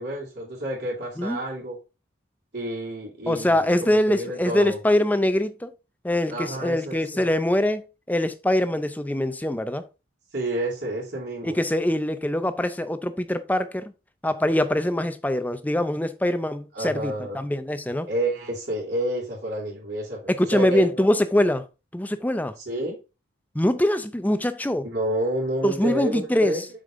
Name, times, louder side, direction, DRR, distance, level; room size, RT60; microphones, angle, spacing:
voice 1, 0.0-1.8 2.5-4.8 6.3-7.2 10.3-11.5 16.7-17.4 18.1-21.0 22.6-23.0 24.8-26.7, right 1 dB, 60° right, 3.3 m, -29 dB
voice 2, 3.3-5.7 6.0-9.9 11.4-13.9 14.2-18.1 20.3-21.7 21.9-22.5 23.5-24.8 25.6-26.7, left 1 dB, 10° left, 0.5 m, -23 dB
7.4 x 5.2 x 3.7 m
head